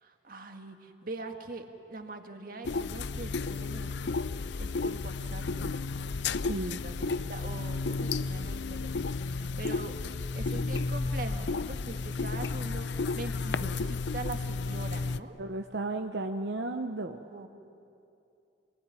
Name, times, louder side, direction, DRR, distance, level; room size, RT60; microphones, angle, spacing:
voice 1, 0.0-4.3 4.6-5.8 6.6-15.4 17.3-17.5, right 2 dB, 50° right, 5 dB, 1.8 m, -43 dB
sound 1, 2.6-15.2, left 3 dB, 75° left, 0.5 m, -32 dB
voice 2, 6.5-6.8 15.4-17.2, right 2 dB, 75° right, 4 dB, 0.9 m, -34 dB
27.0 x 20.0 x 9.8 m, 2.6 s
head